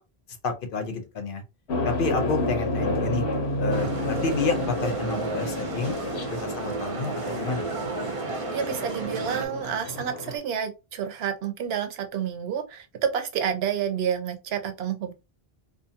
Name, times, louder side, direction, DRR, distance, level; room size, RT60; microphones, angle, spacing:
voice 1, 0.4-1.4 1.8-3.2 3.6-6.0 6.3-7.7, left 4 dB, 60° left, 0.8 m, -30 dB
sound 1, 1.7-10.4, left 2 dB, 85° left, 1.0 m, -30 dB
sound 2, 3.7-9.5, right 4 dB, 40° right, 0.5 m, -32 dB
voice 2, 8.5-15.1, right 8 dB, 75° right, 0.8 m, -29 dB
2.5 x 2.4 x 2.7 m
omnidirectional pair, 1.1 m